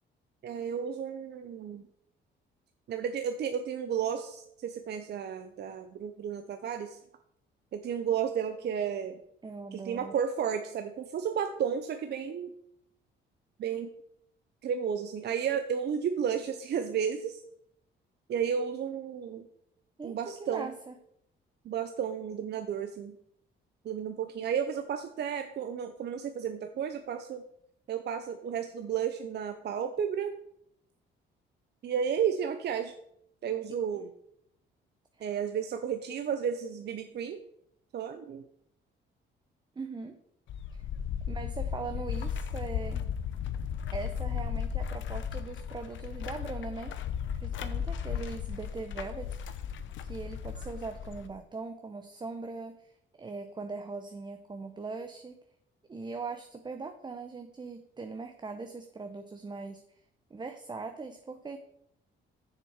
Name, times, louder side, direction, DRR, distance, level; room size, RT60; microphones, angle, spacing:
voice 1, 0.4-1.8 2.9-7.0 7.7-9.2 9.7-12.5 13.6-13.9 14.6-17.4 18.3-19.5 20.0-20.7 21.6-23.2 23.8-27.4 27.9-30.3 31.8-32.9 33.4-34.1 35.2-37.4 37.9-38.4, right 8 dB, 55° right, 7 dB, 0.7 m, -32 dB
voice 2, 9.4-10.2 20.0-20.9 39.8-40.2 40.7-40.8 41.3-43.0 43.9-46.9 47.4-49.6 50.0-52.9 53.2-55.4 55.9-59.8 60.3-61.6, right 4 dB, 20° right, 7 dB, 0.7 m, -40 dB
sound 1, 40.5-51.3, left 8 dB, 70° left, 0.7 m, -35 dB
6.9 x 6.8 x 4.8 m, 0.74 s
cardioid pair, 90°, 20 cm